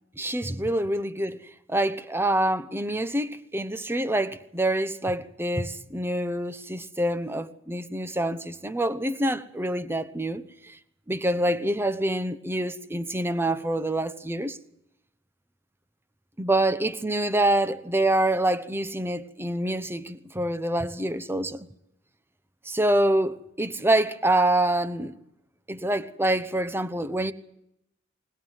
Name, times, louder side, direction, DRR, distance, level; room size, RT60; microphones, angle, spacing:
voice 1, 0.2-1.4 1.7-10.5 11.1-14.6 16.4-21.7 22.7-25.1 25.7-27.3, right 1 dB, 10° right, 1.0 m, -26 dB
21.0 x 20.5 x 7.5 m
head